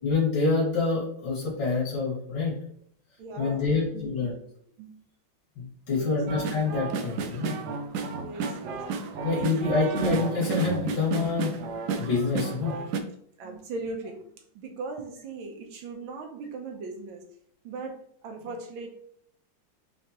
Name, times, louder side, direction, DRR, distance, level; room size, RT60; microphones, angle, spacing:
voice 1, 0.0-2.5 3.4-4.4 5.6-7.6 9.2-11.5 12.0-12.8, left 4 dB, 75° left, -5 dB, 2.4 m, -26 dB
voice 2, 3.2-4.3 4.8-5.0 5.9-6.2 8.1-8.8 9.6-10.0 13.4-14.3 14.5-17.3 17.6-18.0 18.2-18.9, right 3 dB, 90° right, 4 dB, 1.6 m, -39 dB
sound 1, 6.3-13.0, right 4 dB, 70° right, 1.0 m, -32 dB
5.7 x 3.2 x 2.9 m, 0.66 s
omnidirectional pair, 2.1 m